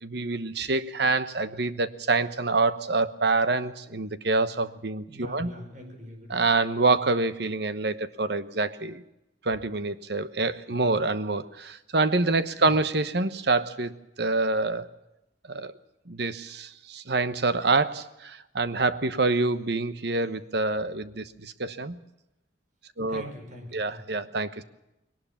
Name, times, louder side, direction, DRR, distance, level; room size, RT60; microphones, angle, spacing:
voice 1, 0.0-5.5 6.3-9.0 9.4-13.9 14.2-14.9 15.5-15.7 16.1-22.0 23.0-23.3 23.7-24.6, right 3 dB, 60° right, 13 dB, 1.1 m, -26 dB
voice 2, 5.1-6.4 10.7-10.9 12.6-12.7 23.1-24.2, equal, 40° right, 4 dB, 5.2 m, -44 dB
21.0 x 19.0 x 7.3 m, 0.88 s
head